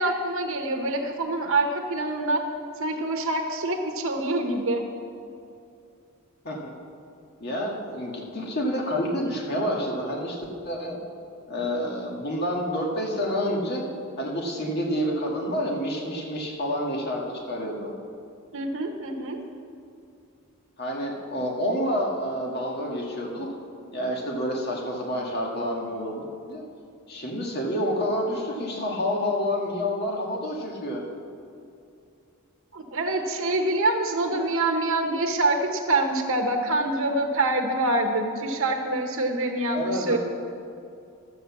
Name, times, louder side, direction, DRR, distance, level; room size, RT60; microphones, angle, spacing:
voice 1, 0.0-2.4 2.8-4.8 18.5-19.4 32.7-40.2, right 2 dB, 65° right, 3 dB, 1.0 m, -25 dB
voice 2, 7.4-10.4 10.6-11.0 11.5-13.8 14.2-17.9 20.8-23.5 23.9-26.6 27.1-31.0 39.7-40.2, equal, 50° left, -1 dB, 1.9 m, -28 dB
12.0 x 8.0 x 7.1 m, 2.6 s
head